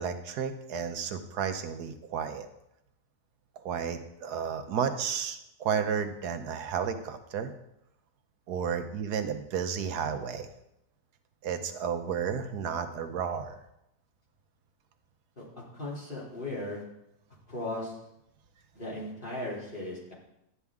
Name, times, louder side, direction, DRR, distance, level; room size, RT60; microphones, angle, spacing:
voice 1, 0.0-2.5 3.6-7.5 8.5-10.5 11.4-13.6, right 7 dB, 75° right, 8 dB, 1.4 m, -32 dB
voice 2, 15.7-16.8 17.5-17.9 18.7-20.1, left 1 dB, 30° left, -5 dB, 3.0 m, -37 dB
12.0 x 9.7 x 3.6 m, 0.83 s
omnidirectional pair, 1.7 m